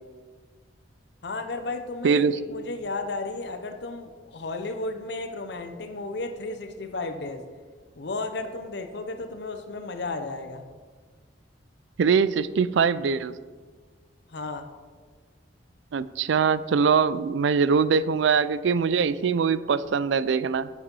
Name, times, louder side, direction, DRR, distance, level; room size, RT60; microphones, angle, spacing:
voice 1, 1.2-7.4 8.0-10.6 14.3-14.7, left 3 dB, 60° left, 7 dB, 0.7 m, -33 dB
voice 2, 2.0-2.4 12.0-13.3 15.9-20.7, right 6 dB, 75° right, 17 dB, 0.4 m, -22 dB
8.2 x 6.9 x 5.4 m, 1.5 s
head